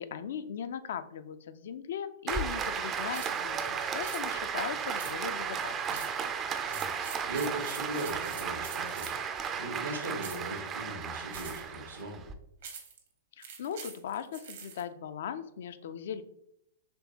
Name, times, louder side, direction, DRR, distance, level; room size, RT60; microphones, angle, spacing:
voice 1, 0.0-6.1 13.4-16.2, left 8 dB, 65° left, 12 dB, 0.3 m, -39 dB
Applause, 2.3-12.3, right 6 dB, 25° right, 0.4 m, -34 dB
sound 1, 3.1-3.4 4.0-4.2 5.0-5.4 5.9-6.2 6.6-9.3 10.2-10.5 11.3-11.7 12.6-13.0 13.4-14.8, right 6 dB, 65° right, 0.9 m, -44 dB
voice 2, 6.7-12.2, right 1 dB, 85° right, 3 dB, 1.1 m, -39 dB
4.3 x 3.2 x 2.8 m, 0.79 s
hypercardioid pair, 110°, 0 cm